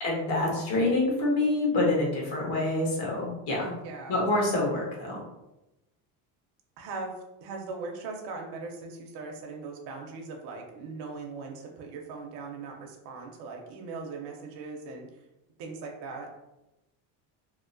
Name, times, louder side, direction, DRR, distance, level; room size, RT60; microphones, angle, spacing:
voice 1, 0.0-3.7 4.1-5.2, left 2 dB, 65° left, -2 dB, 1.1 m, -26 dB
voice 2, 3.6-4.3 6.8-7.1 7.4-15.1 15.6-16.3, right 4 dB, 70° right, 0 dB, 0.6 m, -39 dB
2.8 x 2.0 x 2.5 m, 0.95 s
cardioid pair, 125°, 42 cm